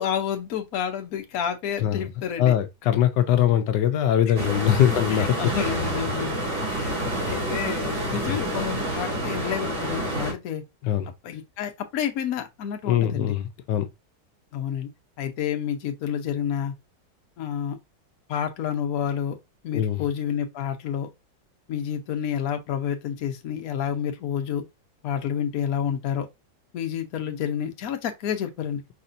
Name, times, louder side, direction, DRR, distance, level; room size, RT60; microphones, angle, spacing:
voice 1, 0.0-2.5 4.3-4.5 5.1-10.6 11.2-13.3 14.5-14.9 15.2-16.7 17.4-17.8 18.3-19.4 19.6-21.1 21.7-24.6 25.0-26.3 26.7-28.8, left 9 dB, 60° left, 1.2 m, -29 dB
voice 2, 2.4-5.5 8.2-8.4 10.8-11.1 12.9-13.9 19.7-20.0, left 11 dB, 85° left, 1.3 m, -22 dB
sound 1, 4.3-10.3, right 1 dB, 70° right, 3.4 m, -28 dB
5.1 x 4.1 x 2.5 m
omnidirectional pair, 1.9 m